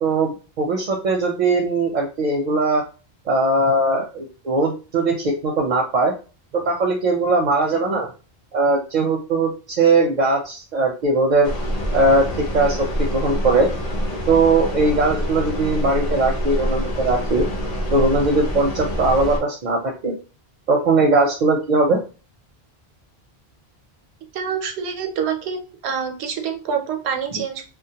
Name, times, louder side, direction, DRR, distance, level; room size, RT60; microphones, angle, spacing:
voice 1, 0.0-2.8 3.3-6.1 6.5-8.1 8.5-11.5 11.9-12.3 12.5-13.7 14.3-17.5 17.9-20.1 20.7-22.0, right 2 dB, 55° right, 0 dB, 0.6 m, -19 dB
sound 1, 11.4-19.4, equal, 45° left, 0.6 m, -26 dB
voice 2, 24.3-27.6, right 7 dB, 85° right, 4 dB, 0.8 m, -26 dB
2.2 x 2.1 x 2.7 m, 0.34 s
omnidirectional pair, 1.1 m